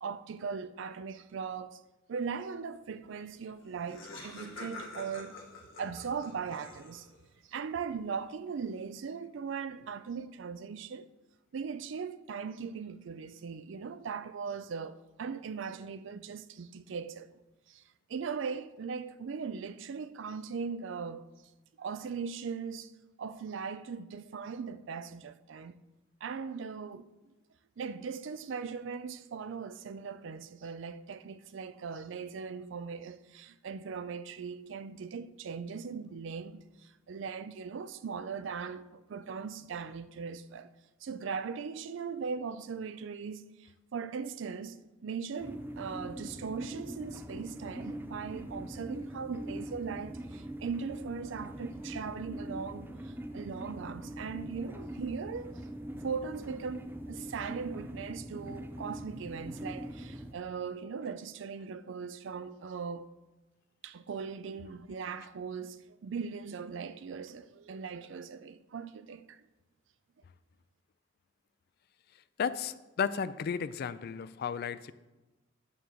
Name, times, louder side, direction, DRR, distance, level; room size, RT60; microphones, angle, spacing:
voice 1, 0.0-1.8 2.1-5.4 5.7-7.1 7.5-11.1 11.5-17.4 17.7-17.8 18.1-21.2 21.8-22.9 23.2-25.8 26.2-27.1 27.8-40.7 41.0-55.7 55.9-63.1 63.8-69.4, right 5 dB, 65° right, 0.4 m, -39 dB
Laughter, 3.3-3.4 3.6-7.2, left 2 dB, 70° left, 1.6 m, -47 dB
sound 1, 45.4-60.3, equal, 10° right, 0.5 m, -42 dB
voice 2, 72.4-74.9, left 7 dB, 55° left, 0.4 m, -33 dB
9.3 x 3.8 x 6.6 m
head